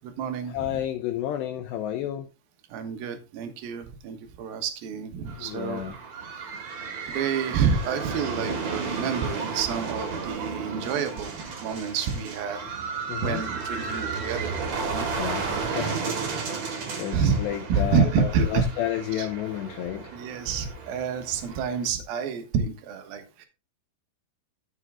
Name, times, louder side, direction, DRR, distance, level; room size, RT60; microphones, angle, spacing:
voice 1, 0.0-0.8 2.7-5.8 7.1-11.3 11.6-12.6 13.2-14.5 14.9-15.1 16.0-16.3 17.1-17.4 17.7-18.7 19.1-19.3 20.1-23.5, right 6 dB, 65° right, 2.5 m, -28 dB
voice 2, 0.5-2.3 5.4-6.0 13.1-13.4 15.2-16.2 17.0-20.1, left 11 dB, 85° left, 2.4 m, -31 dB
sound 1, 5.3-21.9, right 4 dB, 45° right, 2.5 m, -33 dB
13.5 x 6.1 x 3.6 m
omnidirectional pair, 5.9 m